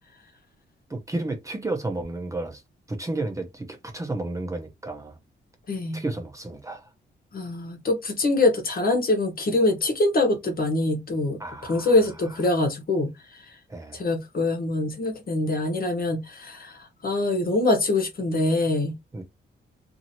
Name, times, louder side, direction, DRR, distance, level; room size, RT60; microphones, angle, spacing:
voice 1, 0.9-2.6 2.9-5.2 5.9-6.9 11.4-11.9 13.7-14.0 19.1-19.2, right 2 dB, 15° right, 0.7 m, -32 dB
voice 2, 5.7-6.0 7.3-13.1 13.9-18.9, left 2 dB, 50° left, 1.2 m, -24 dB
2.8 x 2.7 x 2.8 m
cardioid pair, 105°, 19 cm